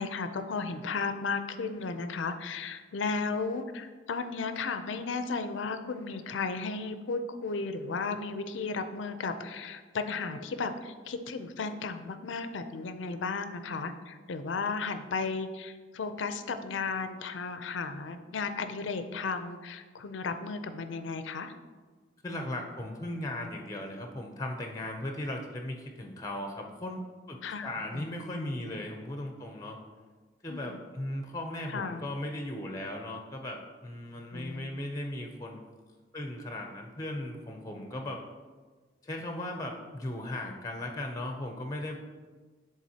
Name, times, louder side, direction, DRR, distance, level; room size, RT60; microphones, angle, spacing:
voice 1, 0.0-21.6 27.4-28.5 30.5-30.8 31.7-32.0 34.3-34.6, left 4 dB, 90° left, 9 dB, 0.5 m, -34 dB
voice 2, 22.2-27.0 27.3-29.8 30.4-35.6 36.1-38.2 39.0-42.0, left 1 dB, 20° left, 3 dB, 0.5 m, -37 dB
10.5 x 3.8 x 2.8 m, 1.4 s
head